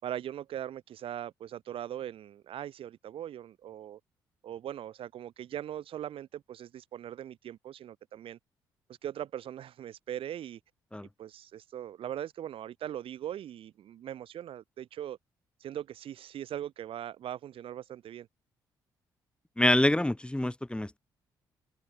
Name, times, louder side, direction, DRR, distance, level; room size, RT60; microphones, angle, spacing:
voice 1, 0.0-4.0 4.4-8.4 9.0-10.6 11.2-15.2 15.6-18.3, right 11 dB, 70° right, 5.5 m, -40 dB
voice 2, 19.6-21.0, left 1 dB, 10° left, 3.3 m, -26 dB
hypercardioid pair, 50°, 10 cm